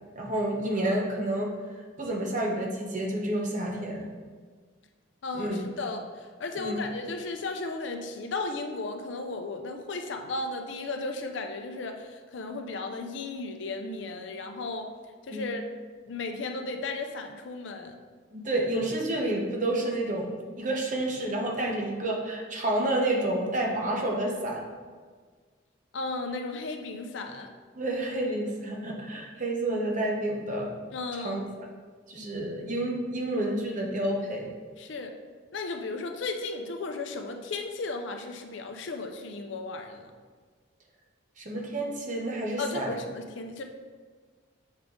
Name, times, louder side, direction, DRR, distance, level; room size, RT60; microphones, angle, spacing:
voice 1, 0.1-4.1 5.3-5.6 6.6-6.8 15.3-15.5 18.3-20.3 20.6-24.6 27.7-30.7 31.1-31.4 32.1-34.5 41.4-42.9, right 1 dB, 40° right, -1 dB, 0.9 m, -29 dB
voice 2, 5.2-14.9 15.3-15.6 16.1-17.9 25.9-27.5 30.9-31.5 34.8-35.1 35.5-40.1 42.6-43.6, left 3 dB, 65° left, 5 dB, 0.5 m, -35 dB
7.3 x 3.7 x 3.6 m, 1.5 s
head